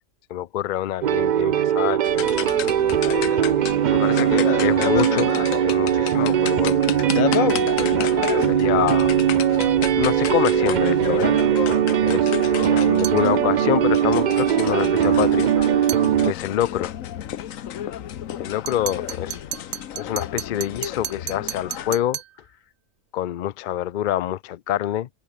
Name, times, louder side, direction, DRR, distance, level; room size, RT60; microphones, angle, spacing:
voice 1, 0.3-2.3 3.9-5.3 5.6-6.8 7.2-7.6 8.3-9.1 10.0-11.4 12.0-12.4 12.6-15.5 15.8-15.9 16.3-16.9 18.4-19.7 20.0-22.2 23.1-25.1, left 12 dB, 60° left, 0.5 m, -26 dB
sound 1, 1.0-16.3, right 10 dB, 65° right, 0.4 m, -20 dB
sound 2, 2.0-22.0, left 10 dB, 85° left, 1.3 m, -30 dB
sound 3, 13.0-13.3 15.9-16.1 18.7-22.4, right 14 dB, 85° right, 1.0 m, -33 dB
omnidirectional pair, 1.3 m